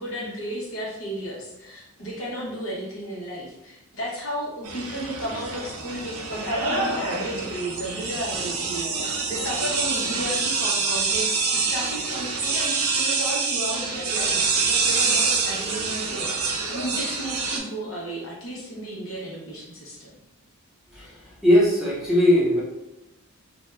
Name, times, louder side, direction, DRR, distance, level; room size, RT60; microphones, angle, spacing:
voice 1, 0.0-20.2, equal, 60° left, -4 dB, 1.0 m, -33 dB
sound 1, 4.6-17.6, right 4 dB, 70° right, 0.5 m, -26 dB
voice 2, 21.4-22.6, left 1 dB, ahead, -8 dB, 0.6 m, -19 dB
2.6 x 2.1 x 3.4 m, 0.90 s
head